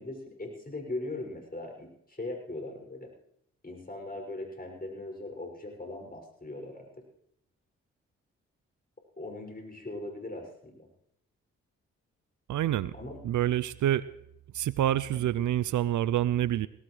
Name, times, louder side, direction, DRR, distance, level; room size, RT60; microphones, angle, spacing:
voice 1, 0.0-3.1 3.6-7.0 9.2-10.9 12.9-13.2 13.8-13.9, left 2 dB, 30° left, 2 dB, 6.5 m, -40 dB
voice 2, 12.5-12.9 13.2-14.0 14.5-16.7, right 12 dB, 65° right, 18 dB, 0.6 m, -27 dB
19.5 x 17.5 x 3.3 m, 0.76 s
hypercardioid pair, 40°, 32 cm